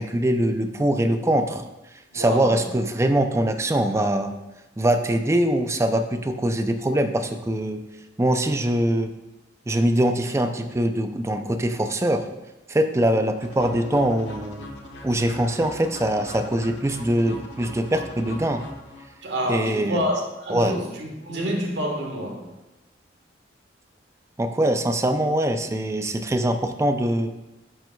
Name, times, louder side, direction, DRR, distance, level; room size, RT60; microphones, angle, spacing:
voice 1, 0.0-1.6 2.1-4.3 4.8-7.8 8.2-9.1 9.7-12.3 12.7-14.7 15.0-18.6 19.5-20.0 20.5-20.7 24.4-27.3, right 1 dB, 15° right, 7 dB, 0.4 m, -23 dB
voice 2, 2.1-2.6 19.2-22.6, equal, 70° right, 1 dB, 1.5 m, -28 dB
sound 1, 13.4-19.4, left 2 dB, 70° left, 1.1 m, -41 dB
11.0 x 6.0 x 2.3 m, 0.99 s
head